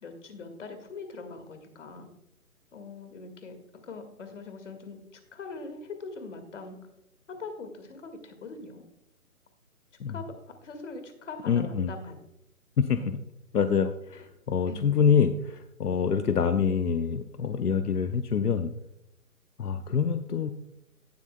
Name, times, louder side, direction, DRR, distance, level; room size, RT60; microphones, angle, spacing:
voice 1, 0.0-2.1 2.7-6.8 7.3-8.8 10.1-12.2 12.9-13.1 14.1-14.2 14.7-15.0, left 4 dB, 55° left, 7 dB, 2.0 m, -42 dB
voice 2, 11.5-11.9 12.8-13.0 13.5-18.7 19.6-20.5, left 6 dB, 85° left, 10 dB, 0.8 m, -26 dB
17.0 x 7.8 x 2.2 m, 0.79 s
figure-of-eight pair, 145°, 45 cm